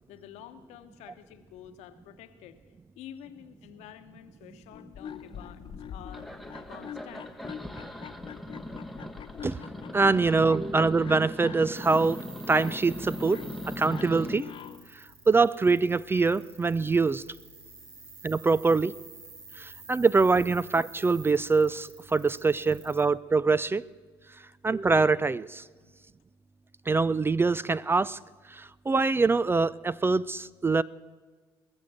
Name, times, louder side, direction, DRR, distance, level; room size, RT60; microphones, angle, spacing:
voice 1, 0.1-2.6 3.0-6.3 6.7-7.3 25.7-26.0, left 10 dB, 65° left, 10 dB, 1.1 m, -49 dB
sound 1, 4.6-14.9, left 9 dB, 45° left, 0.7 m, -44 dB
sound 2, 5.3-5.7 6.1-14.4, left 1 dB, ahead, 1.1 m, -39 dB
voice 2, 9.9-13.4 13.8-14.5 15.3-17.2 18.2-18.9 19.6-23.8 24.6-25.6 26.9-28.2 28.5-30.8, right 4 dB, 20° right, 20 dB, 0.4 m, -24 dB
sound 3, 11.7-23.1, right 4 dB, 75° right, 2.4 m, -50 dB
21.0 x 7.1 x 7.7 m, 1.4 s
hypercardioid pair, 55°, 12 cm